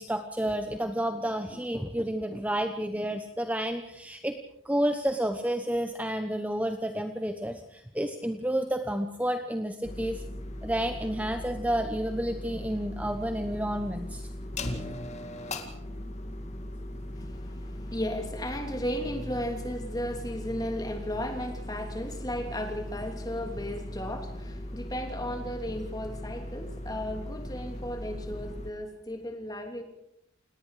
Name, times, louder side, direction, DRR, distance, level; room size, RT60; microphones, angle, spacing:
voice 1, 0.0-4.4 4.6-10.2 10.6-14.3, right 1 dB, 10° right, 6 dB, 1.0 m, -30 dB
sound 1, 9.8-28.7, left 1 dB, 35° left, 2.3 m, -39 dB
voice 2, 17.1-29.8, equal, 20° left, 4 dB, 3.1 m, -35 dB
29.0 x 19.0 x 5.0 m, 0.76 s
head